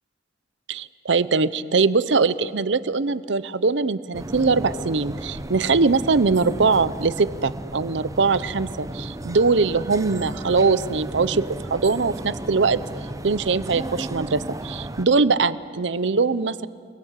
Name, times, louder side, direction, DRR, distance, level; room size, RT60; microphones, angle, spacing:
voice 1, 0.7-12.8 13.2-16.7, right 4 dB, 70° right, 16 dB, 0.7 m, -22 dB
sound 1, 4.1-15.0, right 1 dB, 20° right, 0.8 m, -34 dB
28.5 x 21.5 x 8.2 m, 2.2 s
head